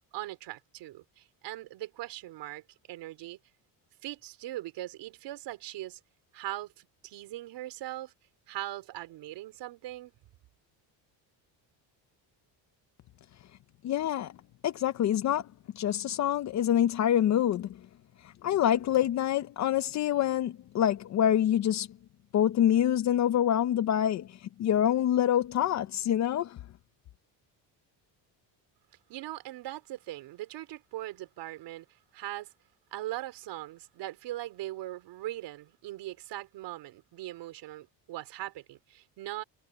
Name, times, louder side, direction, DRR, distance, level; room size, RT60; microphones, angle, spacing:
voice 1, 0.1-3.4 4.0-6.0 6.3-8.1 8.5-10.1 29.1-31.9 32.1-32.5 32.9-39.4, right 15 dB, 65° right, 4.0 m, -40 dB
voice 2, 13.8-14.3 14.6-15.4 15.7-17.8 18.4-21.9 22.3-24.3 24.6-26.6, left 10 dB, 40° left, 0.6 m, -26 dB
cardioid pair, 175°, 44 cm